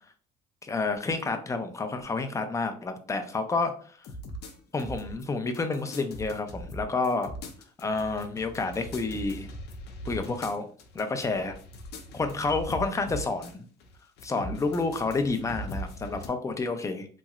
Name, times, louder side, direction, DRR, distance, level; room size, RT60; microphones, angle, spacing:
voice 1, 0.6-4.0 4.7-7.3 7.8-9.5 10.1-10.7 10.9-11.5 12.1-13.6 14.2-17.1, left 3 dB, 20° left, 7 dB, 0.5 m, -29 dB
sound 1, 4.0-5.2 5.5-13.5 13.8-16.3, equal, 75° left, 0.6 m, -40 dB
3.0 x 2.7 x 2.4 m, 0.43 s
cardioid pair, 110°, 17 cm